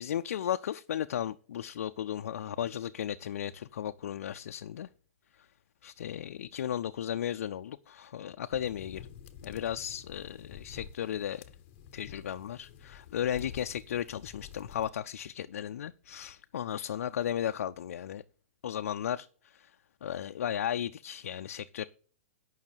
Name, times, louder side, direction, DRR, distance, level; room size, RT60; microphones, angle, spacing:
voice 1, 0.0-4.9 5.8-9.0 9.4-11.4 11.9-18.2 18.6-19.7 20.0-21.9, left 10 dB, 70° left, 0.4 m, -35 dB
sound 1, 8.5-14.9, left 8 dB, 30° left, 0.9 m, -49 dB
9.7 x 5.7 x 7.3 m
hypercardioid pair, 165°, 8 cm